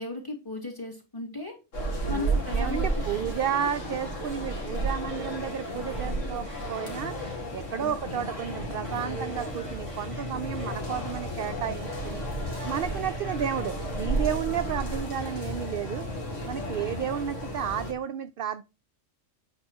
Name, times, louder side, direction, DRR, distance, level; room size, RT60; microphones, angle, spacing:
voice 1, 0.0-1.6 2.1-3.0 7.8-8.2 14.5-14.8 16.5-16.9, left 2 dB, 15° left, 2.5 m, -37 dB
sound 1, 1.7-17.9, right 1 dB, 70° left, 2.4 m, -33 dB
voice 2, 2.1-7.2 7.5-12.2 12.7-16.0 16.5-18.6, right 9 dB, 60° right, 0.6 m, -32 dB
sound 2, 2.3-14.5, right 5 dB, 25° right, 1.3 m, -48 dB
8.5 x 4.3 x 4.4 m
omnidirectional pair, 1.3 m